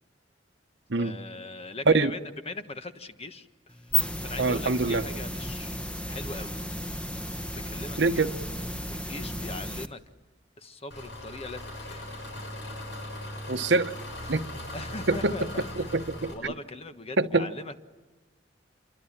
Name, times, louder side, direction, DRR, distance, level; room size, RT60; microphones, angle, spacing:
voice 1, 0.9-3.8 4.2-6.6 7.5-8.3 8.9-10.0 10.6-12.2 14.7-15.9 16.3-17.7, left 2 dB, 35° left, 1.4 m, -40 dB
sound 1, 3.7-9.9, equal, 5° left, 1.3 m, -33 dB
voice 2, 4.4-5.0 8.0-8.3 13.5-13.9 14.3-14.5 15.1-15.4 15.8-16.3 17.2-17.5, right 3 dB, 70° right, 1.2 m, -24 dB
Engine, 10.9-16.3, left 1 dB, 85° left, 7.3 m, -39 dB
28.0 x 23.5 x 8.8 m
head